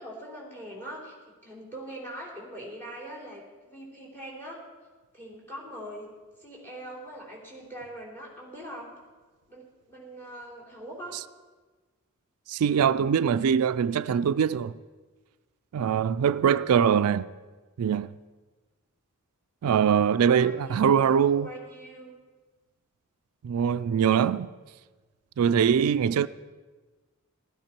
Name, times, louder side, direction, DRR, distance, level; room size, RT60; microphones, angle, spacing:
voice 1, 0.0-4.6 5.1-6.1 6.4-8.9 9.5-11.2 20.2-22.1, right 1 dB, 10° left, 3.5 m, -42 dB
voice 2, 12.5-14.8 15.7-17.3 17.8-18.1 19.6-21.5 23.4-24.5 25.4-26.3, right 7 dB, 85° right, 0.4 m, -23 dB
16.0 x 12.5 x 4.5 m
head